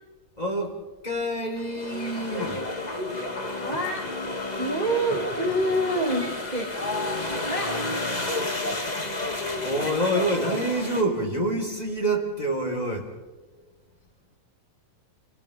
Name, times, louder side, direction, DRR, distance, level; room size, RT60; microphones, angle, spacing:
voice 1, 0.4-0.8 1.0-2.6 9.6-13.1, right 1 dB, 10° left, 1 dB, 3.5 m, -27 dB
sound 1, 1.5-11.0, left 2 dB, 45° left, 0.5 m, -31 dB
voice 2, 3.6-4.0 4.5-6.7 7.5-7.7, right 1 dB, 20° right, -1 dB, 1.2 m, -26 dB
29.5 x 29.5 x 3.5 m, 1.3 s
omnidirectional pair, 4.6 m